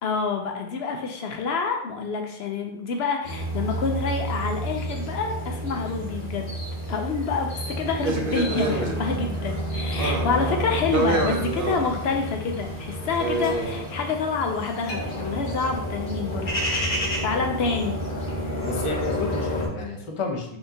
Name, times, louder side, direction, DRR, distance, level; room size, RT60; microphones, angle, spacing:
voice 1, 0.0-6.5 6.9-16.5 17.2-18.0, left 4 dB, 75° left, 3 dB, 0.8 m, -27 dB
sound 1, 3.2-19.7, equal, 50° left, 1.0 m, -30 dB
sound 2, 8.0-13.8, right 3 dB, 60° right, 0.8 m, -28 dB
voice 2, 18.6-20.6, left 3 dB, 35° left, 1 dB, 0.7 m, -31 dB
5.6 x 2.9 x 2.7 m, 0.74 s
omnidirectional pair, 1.1 m